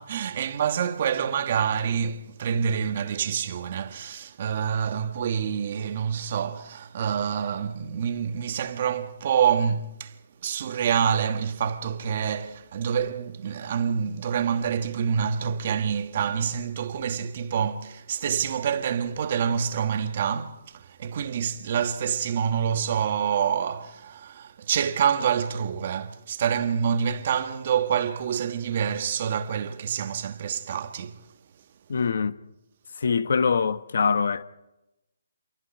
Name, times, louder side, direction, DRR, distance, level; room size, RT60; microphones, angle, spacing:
voice 1, 0.0-10.2 10.4-31.3, right 7 dB, 35° right, 1.6 m, -27 dB
voice 2, 31.9-32.4 33.0-34.4, left 5 dB, 60° left, 1.3 m, -23 dB
28.0 x 23.5 x 4.5 m
hypercardioid pair, 170°, 0 cm